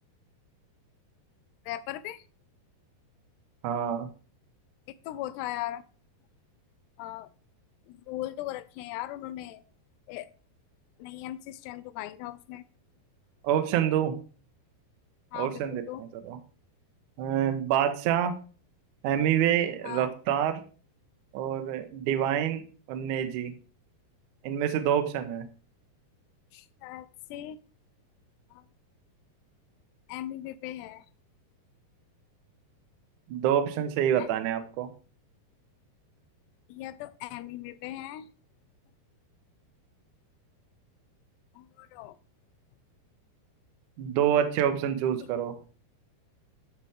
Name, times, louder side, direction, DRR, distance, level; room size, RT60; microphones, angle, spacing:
voice 1, 1.7-2.2 5.1-5.8 7.0-7.3 7.9-9.6 10.1-10.3 11.0-12.6 15.3-16.0 19.8-20.1 26.5-27.6 28.5-28.6 30.1-31.0 34.1-34.3 36.7-38.3 41.6-42.2 45.2-45.3, left 14 dB, 90° left, 2.6 m, -38 dB
voice 2, 3.6-4.1 13.4-14.1 15.3-16.4 17.2-18.3 19.0-20.6 21.3-22.6 22.9-23.5 24.4-25.5 33.3-34.9 44.0-45.5, right 10 dB, 80° right, 1.8 m, -27 dB
12.0 x 4.3 x 3.5 m
omnidirectional pair, 4.7 m